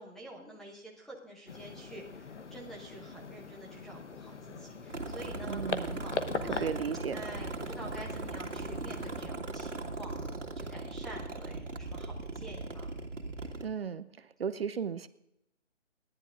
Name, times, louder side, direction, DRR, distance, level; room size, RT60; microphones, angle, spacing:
voice 1, 0.0-6.7 7.1-12.9, right 1 dB, ahead, -2 dB, 0.8 m, -48 dB
sound 1, 1.5-9.3, left 4 dB, 70° left, 1.1 m, -41 dB
sound 2, 4.9-13.7, right 3 dB, 85° right, 1.9 m, -39 dB
voice 2, 5.5-6.0 6.6-7.2 13.6-14.1 14.4-15.1, right 7 dB, 55° right, 14 dB, 0.6 m, -35 dB
28.0 x 11.0 x 2.5 m, 0.85 s
figure-of-eight pair, 145°, 36 cm